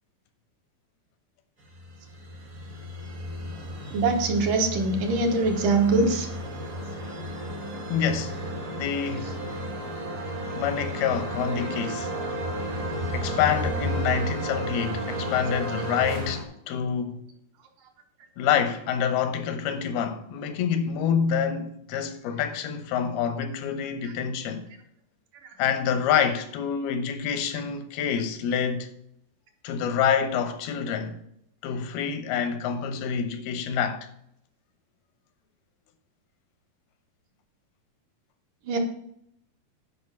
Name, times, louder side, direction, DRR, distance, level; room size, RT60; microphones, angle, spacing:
sound 1, 1.7-16.4, equal, 50° right, 0.9 m, -33 dB
voice 1, 3.9-6.3 38.7-38.8, right 3 dB, 70° right, 2.6 m, -23 dB
voice 2, 7.9-8.4 8.7-9.3 10.6-12.1 13.1-17.2 18.4-24.7 25.6-28.9 29.6-31.2 31.6-34.1, left 7 dB, 85° left, 2.8 m, -27 dB
10.0 x 5.1 x 5.8 m
omnidirectional pair, 4.3 m